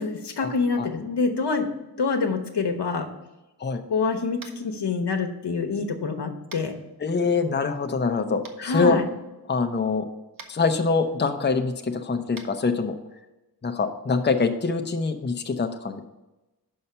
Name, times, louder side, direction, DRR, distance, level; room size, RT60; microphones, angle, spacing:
voice 1, 0.0-1.7 2.0-3.1 3.9-6.7 8.6-9.1, left 4 dB, 80° left, 5 dB, 1.0 m, -26 dB
Tap, 4.4-4.7 6.5-6.7 8.4-8.5 10.3-10.5 12.3-12.5, right 4 dB, 55° right, 0.9 m, -42 dB
voice 2, 7.0-9.0 9.5-10.1 10.5-12.9 13.6-16.0, left 4 dB, 25° left, 6 dB, 0.6 m, -24 dB
5.6 x 5.6 x 6.7 m, 1.0 s
wide cardioid pair, 85°, 40 cm